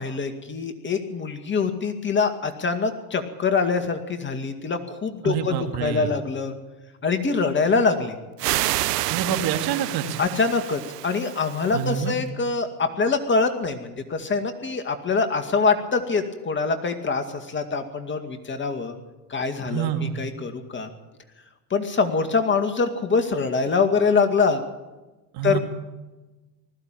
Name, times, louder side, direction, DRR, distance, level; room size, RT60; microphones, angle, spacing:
voice 1, 0.0-5.5 5.8-6.5 7.0-8.2 10.2-18.9 19.3-20.9 21.7-24.6 25.4-25.6, left 4 dB, 25° left, 8 dB, 2.2 m, -24 dB
voice 2, 5.2-6.1 9.1-10.2 11.7-12.1 19.6-20.2 25.3-25.6, right 8 dB, 50° right, 6 dB, 2.8 m, -27 dB
sound 1, 8.4-12.1, right 17 dB, 80° right, 0.9 m, -29 dB
20.0 x 15.0 x 9.1 m, 1.1 s
hypercardioid pair, 100°, 47 cm